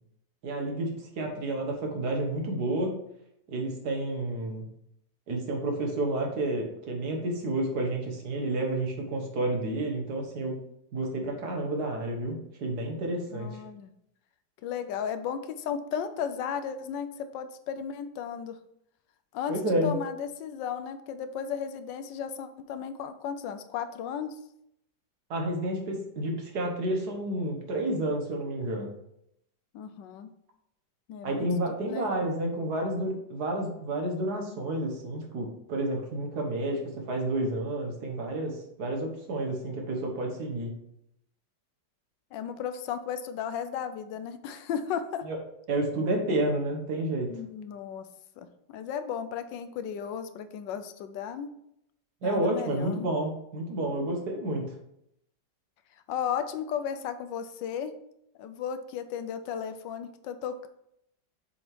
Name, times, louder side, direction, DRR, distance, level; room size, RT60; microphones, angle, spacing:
voice 1, 0.4-2.9 3.5-4.7 5.3-10.6 10.9-13.6 19.5-19.9 25.3-28.9 31.2-40.7 45.2-45.4 45.7-47.4 52.2-54.7, right 1 dB, 60° right, 2 dB, 1.7 m, -30 dB
voice 2, 13.3-13.9 14.6-18.6 19.3-24.3 29.7-30.3 31.1-31.5 31.9-32.1 42.3-45.2 47.3-48.1 48.4-51.5 52.2-53.1 56.1-57.9 58.4-60.7, left 8 dB, 80° left, 10 dB, 1.2 m, -35 dB
7.0 x 3.6 x 4.6 m, 0.76 s
omnidirectional pair, 2.0 m